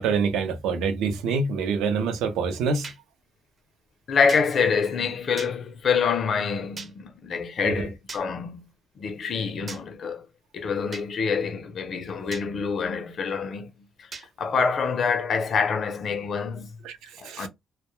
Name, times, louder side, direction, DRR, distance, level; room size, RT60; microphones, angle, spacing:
voice 1, 0.0-2.9 7.6-7.9 16.8-17.5, right 5 dB, 90° right, 0.5 m, -26 dB
Movie Clapper, 2.8-3.0 4.3-4.5 5.4-5.5 6.8-6.9 8.1-8.2 9.7-9.8 10.9-11.1 12.3-12.5 14.1-14.3, right 4 dB, 40° right, 0.5 m, -38 dB
voice 2, 4.1-8.7 9.0-10.3 10.5-16.8 17.2-17.5, left 5 dB, 55° left, 0.5 m, -26 dB
2.2 x 2.0 x 3.0 m
cardioid pair, 90°, 0 cm